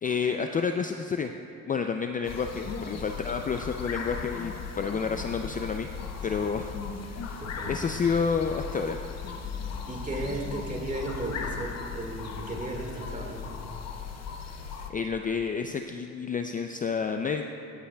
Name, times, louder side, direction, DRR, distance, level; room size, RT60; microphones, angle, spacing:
voice 1, 0.0-1.3 1.7-5.9 6.2-6.7 7.1-7.4 7.7-9.0 14.9-17.4, left 5 dB, 30° left, 5 dB, 0.3 m, -29 dB
sound 1, 2.2-14.9, left 6 dB, 60° left, 0.9 m, -37 dB
voice 2, 7.4-7.8 9.9-13.5, right 2 dB, 25° right, 0 dB, 1.8 m, -35 dB
18.5 x 8.1 x 2.2 m, 2.6 s
cardioid pair, 90°, 30 cm